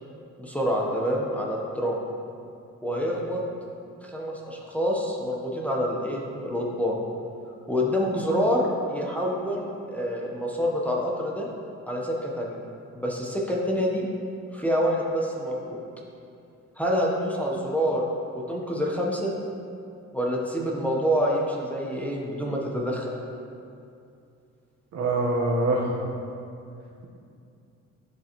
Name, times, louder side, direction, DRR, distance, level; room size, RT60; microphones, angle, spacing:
voice 1, 0.4-2.0 2.8-3.4 4.0-7.0 7.7-11.5 11.9-12.6 12.9-14.0 14.5-15.8 16.8-18.0 18.3-19.3 20.1-23.2, equal, 5° left, -3 dB, 0.9 m, -27 dB
voice 2, 24.9-25.9, right 2 dB, 65° right, -1 dB, 1.2 m, -24 dB
11.0 x 3.9 x 3.0 m, 2.5 s
cardioid pair, 90°, 30 cm